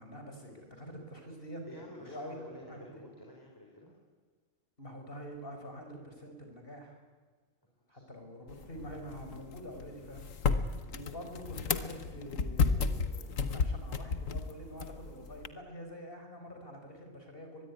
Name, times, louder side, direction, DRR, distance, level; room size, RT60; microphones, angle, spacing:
voice 1, 0.0-2.4 2.7-2.9 4.8-7.0 7.9-10.3 10.6-17.6, equal, 45° left, 4 dB, 5.1 m, -46 dB
voice 2, 1.6-3.9 7.9-8.0, equal, 15° left, -1 dB, 4.3 m, -50 dB
sound 1, 8.5-15.5, left 5 dB, 75° left, 1.6 m, -33 dB
24.0 x 21.0 x 9.7 m, 1.5 s
omnidirectional pair, 1.4 m